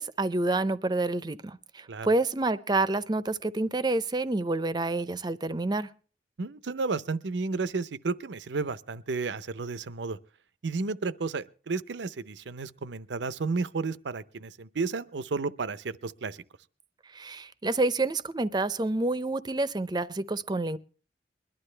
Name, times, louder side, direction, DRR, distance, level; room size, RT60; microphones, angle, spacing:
voice 1, 0.0-5.9 17.1-20.8, right 2 dB, 25° right, 0.5 m, -28 dB
voice 2, 6.4-10.2 10.6-16.4, right 4 dB, 85° right, 0.6 m, -32 dB
21.5 x 11.5 x 3.3 m
head